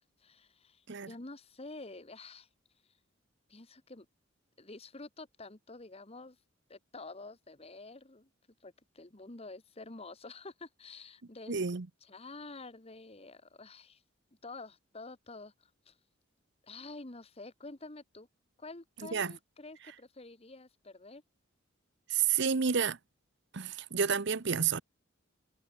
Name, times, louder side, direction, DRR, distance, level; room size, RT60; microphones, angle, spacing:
voice 1, 0.2-2.5 3.5-4.1 4.6-6.4 6.7-8.3 8.6-14.0 14.4-16.0 16.6-18.3 18.6-21.2, left 3 dB, 30° left, 1.4 m, -49 dB
voice 2, 11.5-11.9 19.1-19.3 22.1-23.0 23.5-24.8, right 6 dB, 60° right, 0.8 m, -30 dB
head